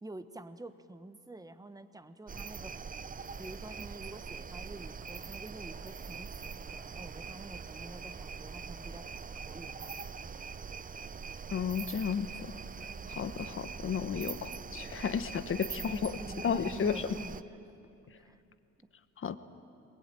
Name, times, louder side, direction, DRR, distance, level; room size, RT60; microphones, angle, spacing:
voice 1, 0.0-2.7 3.4-9.0 9.5-9.9 15.8-17.6 18.2-18.4, right 2 dB, 10° right, 10 dB, 1.2 m, -47 dB
sound 1, 2.3-17.4, right 5 dB, 30° right, 0.7 m, -43 dB
voice 2, 11.5-12.5 13.1-17.1 19.2-19.4, left 7 dB, 45° left, 12 dB, 1.1 m, -33 dB
22.5 x 20.5 x 9.1 m, 2.7 s
cardioid pair, 90°, 30 cm